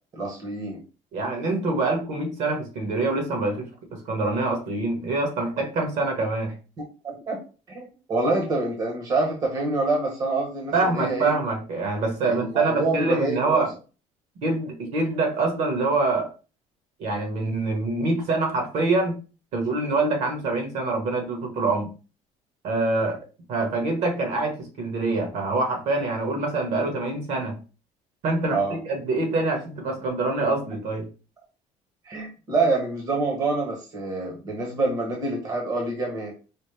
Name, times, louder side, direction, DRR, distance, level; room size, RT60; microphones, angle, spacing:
voice 1, 0.1-0.8 7.0-7.4 7.7-11.3 12.2-13.6 28.5-28.7 32.1-36.3, right 3 dB, 30° right, 0 dB, 0.9 m, -26 dB
voice 2, 1.1-6.5 10.7-13.7 14.4-16.3 17.0-19.2 19.5-21.9 22.6-23.2 23.5-27.6 28.2-31.1, right 3 dB, 55° right, 3 dB, 1.3 m, -25 dB
4.9 x 2.1 x 3.3 m, 0.34 s
cardioid pair, 170°, 13 cm